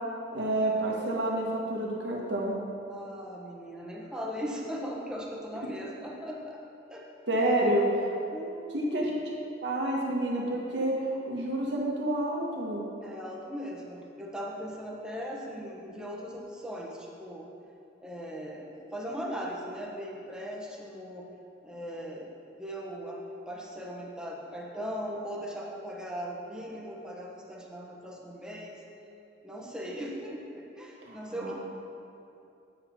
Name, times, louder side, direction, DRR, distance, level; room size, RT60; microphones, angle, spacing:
voice 1, 0.3-2.5 7.3-8.2 8.7-9.3 9.6-12.9 31.0-31.5, right 1 dB, 70° right, -3 dB, 1.7 m, -29 dB
voice 2, 2.9-6.6 6.9-7.1 7.4-7.6 8.3-8.9 13.0-17.5 18.0-21.2 21.6-22.3 22.6-23.2 23.5-28.8 29.4-31.5, equal, 5° right, -3 dB, 1.2 m, -39 dB
9.2 x 7.6 x 4.5 m, 2.7 s
head